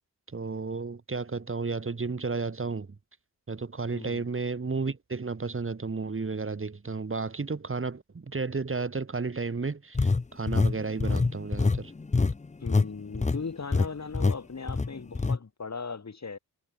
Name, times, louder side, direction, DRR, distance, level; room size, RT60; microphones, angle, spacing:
voice 1, 0.3-2.9 3.5-11.9, right 4 dB, 35° right, 2.2 m, -32 dB
voice 2, 3.9-4.2 12.6-16.4, left 4 dB, 45° left, 5.2 m, -38 dB
sound 1, 9.9-12.9 13.1-13.4 13.7-13.9 14.1-14.4 14.7-15.4, left 3 dB, 20° left, 0.7 m, -25 dB
cardioid pair, 65°, 38 cm